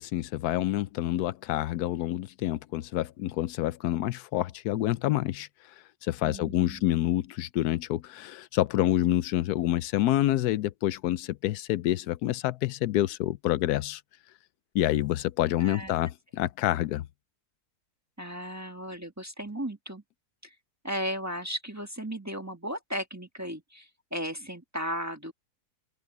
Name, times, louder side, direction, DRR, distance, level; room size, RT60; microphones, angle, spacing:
voice 1, 0.0-5.7 6.0-14.0 14.7-17.1, left 14 dB, 85° left, 1.1 m, -27 dB
voice 2, 6.2-6.8 15.6-15.9 18.2-20.0 20.4-20.5 20.8-25.3, equal, 10° right, 1.4 m, -35 dB
open air
omnidirectional pair, 1.6 m